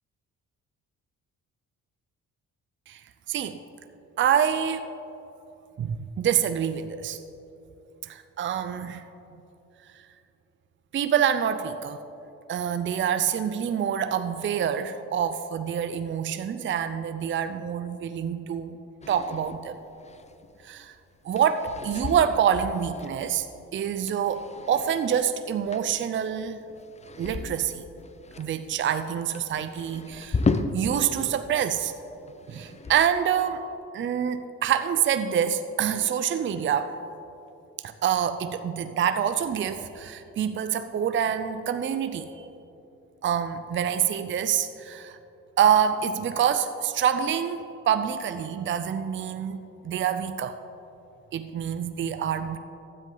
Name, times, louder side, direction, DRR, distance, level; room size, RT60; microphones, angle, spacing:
voice 1, 3.3-3.6 4.2-4.9 5.8-7.2 8.0-9.0 9.9-10.0 10.9-12.0 12.5-18.8 19.1-19.8 20.6-20.9 21.2-23.5 23.7-26.6 27.2-27.8 28.4-30.4 30.7-31.9 32.5-33.7 33.9-37.0 37.8-42.5 43.2-45.2 45.6-49.6 49.8-50.6 51.3-52.6, right 8 dB, 40° right, 10 dB, 0.5 m, -26 dB
sound 1, 19.0-31.3 31.6-33.2, left 3 dB, 25° left, 0.6 m, -35 dB
15.5 x 10.0 x 3.9 m, 2.9 s
cardioid pair, 90°, 30 cm